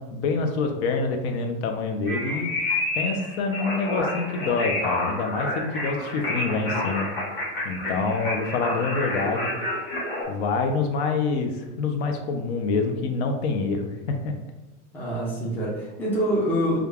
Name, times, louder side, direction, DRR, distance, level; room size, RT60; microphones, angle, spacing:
voice 1, 0.0-2.5 3.0-7.1 7.6-9.7 10.3-14.3, left 4 dB, 65° left, 4 dB, 0.7 m, -26 dB
sound 1, 2.1-10.2, left 2 dB, 30° left, 1.3 m, -29 dB
voice 2, 14.9-16.8, equal, 5° left, -5 dB, 0.4 m, -25 dB
5.1 x 2.3 x 2.3 m, 1.1 s
supercardioid pair, 160°, 35 cm